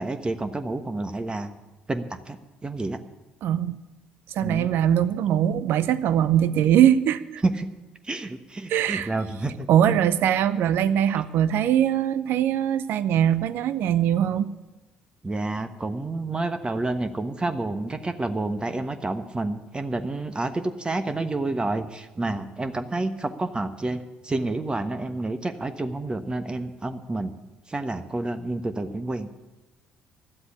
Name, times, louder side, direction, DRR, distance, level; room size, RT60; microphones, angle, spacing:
voice 1, 0.0-1.5 1.9-2.4 2.6-3.0 4.4-4.7 7.4-7.7 8.0-9.7 15.2-27.3 27.7-29.3, right 2 dB, 20° right, 9 dB, 1.2 m, -29 dB
voice 2, 3.4-3.8 4.3-7.4 8.7-9.1 9.7-14.5, right 10 dB, 65° right, 15 dB, 0.7 m, -21 dB
12.0 x 7.9 x 9.8 m, 1.1 s
hypercardioid pair, 60°, 4 cm